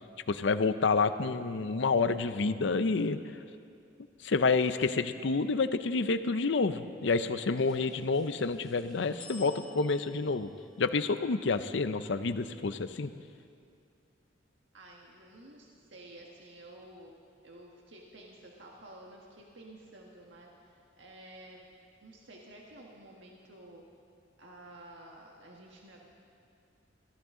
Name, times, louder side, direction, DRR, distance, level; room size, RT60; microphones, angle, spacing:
voice 1, 0.3-3.2 4.2-10.5 10.8-13.1, left 4 dB, 70° left, 11 dB, 0.6 m, -28 dB
sound 1, 7.5-12.1, left 2 dB, 5° left, 3.8 m, -55 dB
voice 2, 14.7-17.1 17.4-21.7 22.0-23.8 24.4-26.0, right 1 dB, 75° right, -1 dB, 1.5 m, -52 dB
21.5 x 15.5 x 3.8 m, 2.4 s
head